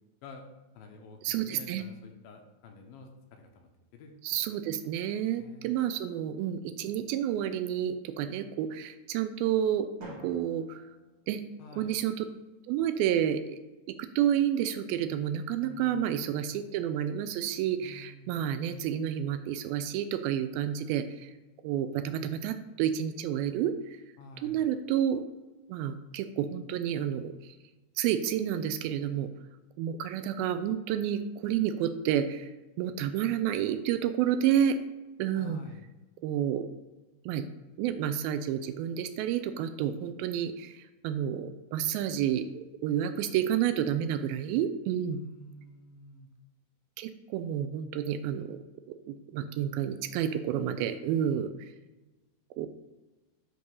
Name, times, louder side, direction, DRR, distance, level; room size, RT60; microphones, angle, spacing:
voice 1, 0.2-4.4 5.4-5.7 11.6-12.0 15.6-16.3 17.8-18.7 24.2-24.7 35.4-35.9 45.1-46.3, left 2 dB, 75° left, 3 dB, 2.5 m, -50 dB
voice 2, 1.2-1.8 4.2-9.9 10.2-10.8 11.3-11.4 11.8-12.3 12.7-13.6 14.0-21.3 21.6-24.0 24.4-25.3 25.7-27.5 28.0-29.3 29.8-32.5 32.8-34.8 35.2-35.6 36.2-36.7 37.3-37.4 37.8-45.2 47.0-48.6 49.1-51.5 52.6-52.7, right 10 dB, 85° right, 9 dB, 2.1 m, -30 dB
Drum, 10.0-12.0, right 1 dB, 45° right, 1.8 m, -48 dB
10.5 x 3.8 x 5.4 m, 1.1 s
omnidirectional pair, 4.8 m